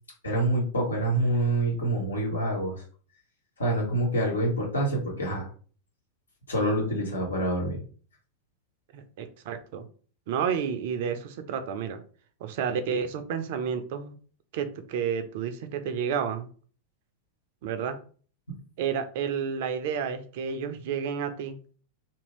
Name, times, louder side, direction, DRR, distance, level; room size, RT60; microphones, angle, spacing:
voice 1, 0.2-2.8 3.6-5.5 6.5-7.8, right 1 dB, 75° left, -2 dB, 1.3 m, -26 dB
voice 2, 8.9-9.9 10.3-12.0 12.4-14.2 14.5-16.5 17.6-18.0 18.8-21.6, right 7 dB, 50° right, 9 dB, 0.5 m, -30 dB
2.8 x 2.6 x 3.1 m, 0.40 s
figure-of-eight pair, 90°, 0 cm